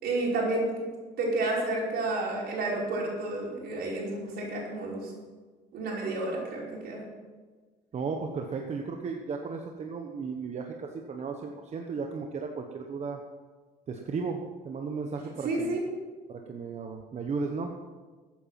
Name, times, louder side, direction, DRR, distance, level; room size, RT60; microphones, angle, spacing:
voice 1, 0.0-0.7 1.2-5.1 5.7-7.0 15.4-15.8, right 2 dB, 70° right, -3 dB, 5.3 m, -30 dB
voice 2, 7.9-13.2 13.9-15.8 16.3-17.7, right 4 dB, 40° right, 3 dB, 1.2 m, -35 dB
14.5 x 9.4 x 5.9 m, 1.4 s
cardioid pair, 110°, 17 cm